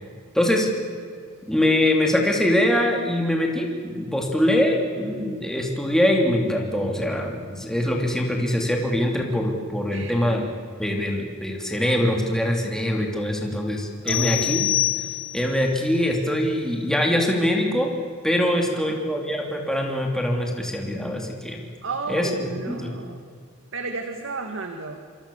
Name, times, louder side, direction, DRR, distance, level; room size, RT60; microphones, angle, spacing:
voice 1, 0.3-0.7 1.5-10.5 10.8-14.6 15.3-17.9 18.2-21.6 22.1-22.9, left 1 dB, 5° left, 0 dB, 3.1 m, -23 dB
voice 2, 9.9-10.4 14.0-14.6 18.5-19.1 21.8-23.2 23.7-25.0, right 3 dB, 60° right, 5 dB, 2.0 m, -33 dB
sound 1, 14.1-15.6, left 15 dB, 65° left, 3.0 m, -25 dB
27.0 x 26.5 x 7.2 m, 2.2 s
head